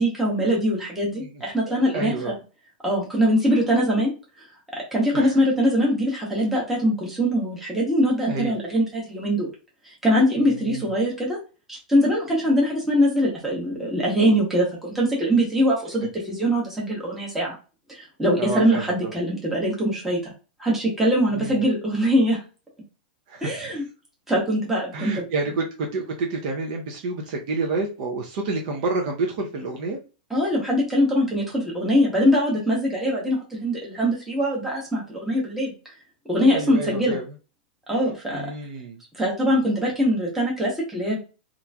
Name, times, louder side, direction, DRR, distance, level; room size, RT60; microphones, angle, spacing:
voice 1, 0.0-2.3 2.8-4.1 4.9-9.5 9.8-11.4 11.7-17.5 17.9-20.3 20.6-22.4 23.4-23.8 24.3-25.3 30.3-35.7 36.3-37.2 37.9-38.4 39.1-41.2, equal, 5° right, -4 dB, 0.9 m, -22 dB
voice 2, 1.2-2.3 5.1-5.4 8.2-8.5 10.5-10.9 18.4-19.1 21.3-21.6 23.3-23.7 24.9-30.0 36.3-37.3 38.3-39.0, right 3 dB, 50° right, 1 dB, 0.6 m, -29 dB
2.9 x 2.5 x 2.2 m, 0.33 s
supercardioid pair, 155°, 5 cm